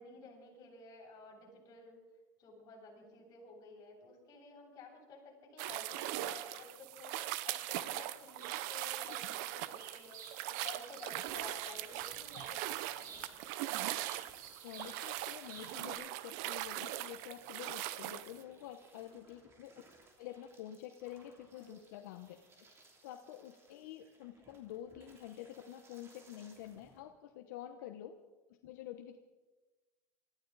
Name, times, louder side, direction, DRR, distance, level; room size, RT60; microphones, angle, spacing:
voice 1, 0.0-2.0 2.4-12.7 13.0-13.5 18.9-19.2 21.5-22.1, left 3 dB, 40° left, -3 dB, 7.7 m, -53 dB
sound 1, 5.6-18.4, right 15 dB, 70° right, 0.8 m, -40 dB
Bird vocalization bird call bird song, 7.5-15.9, right 6 dB, 90° right, 3.6 m, -55 dB
sound 2, 9.1-27.0, right 2 dB, 25° right, 3.0 m, -64 dB
voice 2, 14.6-19.7 20.2-22.4 23.0-28.1 28.6-29.2, left 11 dB, 80° left, 6 dB, 1.0 m, -48 dB
23.5 x 14.5 x 4.1 m, 1.2 s
supercardioid pair, 130°, 10 cm